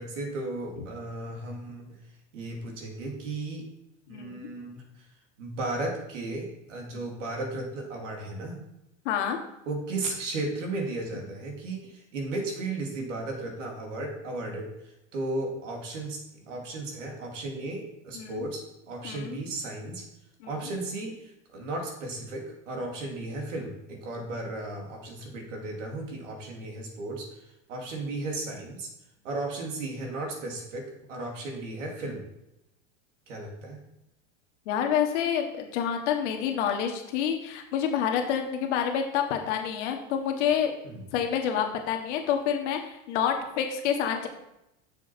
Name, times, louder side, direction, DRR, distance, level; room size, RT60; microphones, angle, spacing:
voice 1, 0.0-2.0 2.3-3.7 4.1-5.0 5.4-8.6 9.7-20.0 20.4-27.4 27.7-28.9 29.2-32.2 33.3-33.8 40.8-41.1, right 2 dB, 85° right, 1 dB, 2.7 m, -35 dB
voice 2, 4.1-4.5 9.0-9.4 18.1-18.5 19.0-19.4 20.4-20.5 34.6-40.7 41.1-44.3, left 8 dB, 70° left, 3 dB, 1.7 m, -28 dB
6.9 x 6.9 x 4.5 m, 0.87 s
hypercardioid pair, 110°, 36 cm